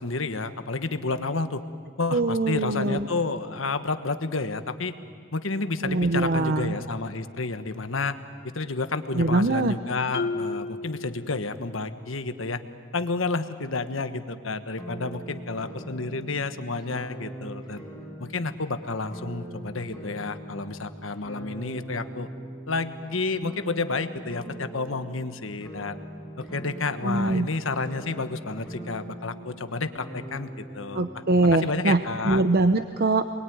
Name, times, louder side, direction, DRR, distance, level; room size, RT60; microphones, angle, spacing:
voice 1, 0.0-1.6 2.0-4.9 5.3-8.2 8.4-12.6 12.9-17.8 18.2-22.3 22.7-26.0 26.4-31.1 31.5-32.4, left 3 dB, 75° left, 9 dB, 1.4 m, -30 dB
voice 2, 2.1-3.1 5.8-6.7 9.1-9.8 27.0-27.5 30.9-32.0 32.2-33.2, right 2 dB, 50° right, 9 dB, 0.8 m, -23 dB
Marimba xylophone, 10.1-11.9, left 3 dB, 60° left, 1.2 m, -33 dB
sound 1, 14.8-32.6, right 1 dB, ahead, 7.1 m, -42 dB
28.0 x 22.0 x 9.5 m, 2.1 s
head